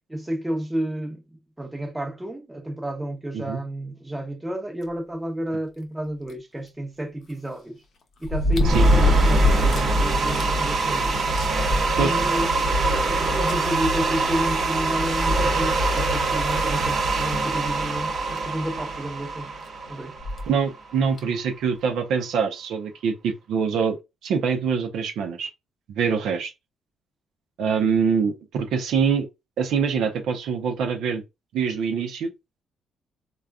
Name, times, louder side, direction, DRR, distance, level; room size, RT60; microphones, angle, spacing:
voice 1, 0.1-1.2 1.6-7.8 8.2-11.2 11.9-12.5 12.9-19.5 19.9-20.2, right 1 dB, 10° right, 0.8 m, -31 dB
sound 1, 6.3-6.4 8.2-9.9 10.4-10.5 10.9-11.0 11.4-12.5 13.5-13.6 15.0-15.1 15.7-15.8 16.5-16.7 18.1-18.2 18.4-18.5 20.2-20.5 21.2-21.3, left 1 dB, 60° left, 0.7 m, -23 dB
sound 2, 8.6-20.8, right 2 dB, 65° right, 1.0 m, -23 dB
voice 2, 20.5-24.0 24.2-25.5 25.9-26.5 27.6-29.3 29.6-31.2 31.5-32.3, right 6 dB, 80° right, 0.6 m, -24 dB
3.5 x 2.3 x 2.3 m
cardioid pair, 90°, 0 cm